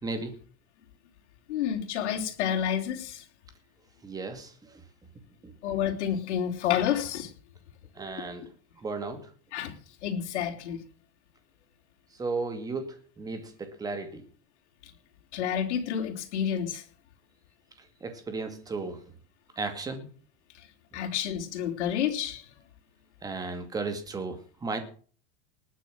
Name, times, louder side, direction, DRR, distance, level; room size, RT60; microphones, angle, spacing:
voice 1, 0.0-0.4 4.0-4.8 5.4-5.6 7.9-8.5 8.8-9.3 12.1-14.2 17.8-19.0 19.6-20.1 23.2-24.8, right 3 dB, 10° right, 7 dB, 2.2 m, -35 dB
voice 2, 1.5-3.2 5.6-7.3 9.5-9.7 10.0-10.8 14.8-14.9 15.3-16.9 20.5-20.7 20.9-22.5, left 9 dB, 80° left, 2 dB, 3.4 m, -29 dB
19.5 x 9.3 x 6.2 m, 0.43 s
supercardioid pair, 170°, 34 cm